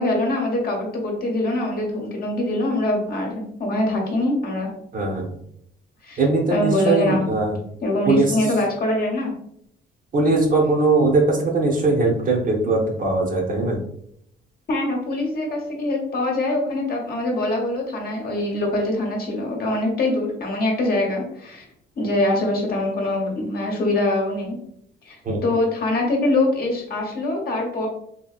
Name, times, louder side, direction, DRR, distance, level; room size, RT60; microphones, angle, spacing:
voice 1, 0.0-4.7 6.0-6.2 6.5-7.2 7.8-9.3 14.7-21.7 22.0-24.6 25.1-27.9, left 2 dB, 50° left, 0 dB, 0.9 m, -23 dB
voice 2, 4.9-5.3 6.2-7.6 8.1-8.4 10.1-13.8 25.2-25.4, right 3 dB, 40° right, 1 dB, 0.7 m, -20 dB
2.8 x 2.7 x 2.3 m, 0.71 s
cardioid pair, 90°, 20 cm